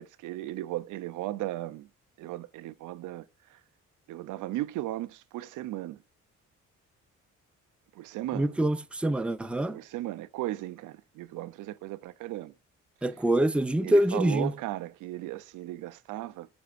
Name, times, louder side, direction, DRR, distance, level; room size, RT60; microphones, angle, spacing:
voice 1, 0.0-1.9 2.2-3.6 4.1-6.0 7.9-8.6 9.7-12.5 13.8-16.5, right 15 dB, 85° right, 0.6 m, -36 dB
voice 2, 8.3-9.8 13.0-14.5, right 1 dB, 5° right, 0.5 m, -25 dB
7.7 x 7.0 x 2.4 m
cardioid pair, 90°, 30 cm